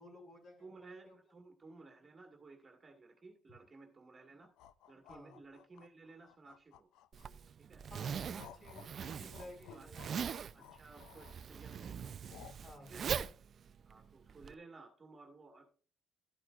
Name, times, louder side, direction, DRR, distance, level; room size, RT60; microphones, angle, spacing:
voice 1, 0.0-0.7 1.0-1.2 5.1-5.3 7.9-8.9 9.2-10.1 12.6-12.9, left 1 dB, 40° left, 1 dB, 4.7 m, -54 dB
voice 2, 0.6-4.5 4.9-6.9 7.7-7.8 8.7-8.9 9.7-12.1 12.8-13.1 13.8-15.7, right 3 dB, 25° right, 2 dB, 1.8 m, -56 dB
sound 1, 4.4-7.4 7.9-12.7, left 11 dB, 85° left, 0.5 m, -58 dB
Zipper (clothing), 7.1-14.5, right 7 dB, 45° right, 0.4 m, -42 dB
12.5 x 8.7 x 2.5 m, 0.41 s
cardioid pair, 120°, 0 cm